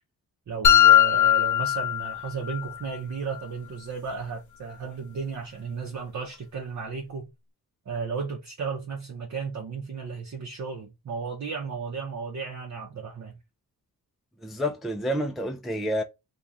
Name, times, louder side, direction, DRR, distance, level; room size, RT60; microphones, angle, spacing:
voice 1, 0.5-7.3 7.9-13.4, right 5 dB, 50° right, 0.8 m, -34 dB
sound 1, 0.6-2.7, left 11 dB, 55° left, 0.7 m, -19 dB
voice 2, 14.4-16.0, equal, ahead, 0.4 m, -29 dB
3.0 x 2.4 x 3.6 m
wide cardioid pair, 130°, 37 cm